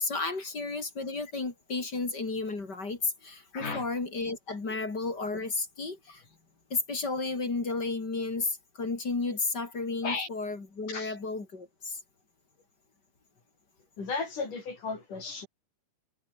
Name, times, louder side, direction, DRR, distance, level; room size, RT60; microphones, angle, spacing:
voice 1, 0.0-6.2 6.7-12.0, left 3 dB, 30° left, 3.8 m, -33 dB
voice 2, 3.5-3.9 4.7-4.8 6.1-6.2 10.0-10.3 10.9-11.2 14.0-15.5, left 4 dB, 75° left, 8.1 m, -35 dB
omnidirectional pair, 3.7 m